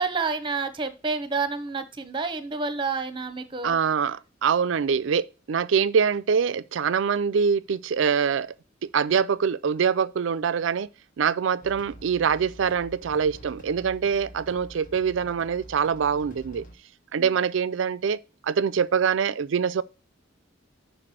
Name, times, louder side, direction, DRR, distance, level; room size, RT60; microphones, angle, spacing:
voice 1, 0.0-3.8 17.2-17.3, right 4 dB, 25° right, 0.8 m, -29 dB
voice 2, 3.6-8.5 8.8-10.9 11.2-16.6 17.1-19.8, right 6 dB, 70° right, 0.4 m, -24 dB
sound 1, 11.6-16.7, right 1 dB, 40° left, 1.1 m, -46 dB
6.0 x 4.8 x 6.2 m
head